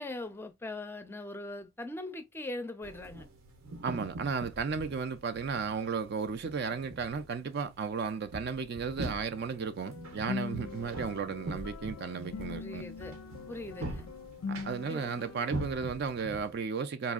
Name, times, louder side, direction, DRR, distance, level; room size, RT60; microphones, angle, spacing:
voice 1, 0.0-3.2 12.6-13.1 13.5-14.1 14.9-15.1, left 2 dB, 10° left, 0.5 m, -40 dB
sound 1, 2.8-16.6, right 1 dB, 75° right, 0.8 m, -44 dB
voice 2, 3.8-12.8 14.5-17.1, right 5 dB, 50° right, 0.4 m, -34 dB
sound 2, 9.8-15.8, left 5 dB, 75° left, 0.4 m, -42 dB
4.0 x 2.7 x 2.3 m
head